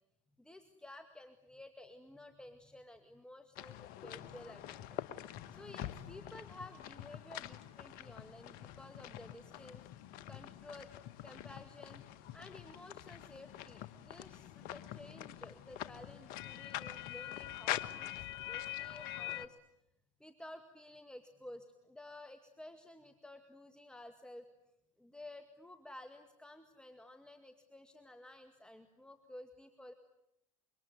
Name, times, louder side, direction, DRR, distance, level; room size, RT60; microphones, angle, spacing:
voice 1, 0.4-5.0 5.5-9.8 10.3-10.9 11.2-12.0 12.3-19.6 20.2-24.5 25.0-29.9, left 1 dB, 5° left, 7 dB, 2.0 m, -53 dB
sound 1, 3.6-19.5, left 13 dB, 60° left, 1.5 m, -45 dB
26.0 x 24.0 x 9.5 m, 0.83 s
hypercardioid pair, 90°, 17 cm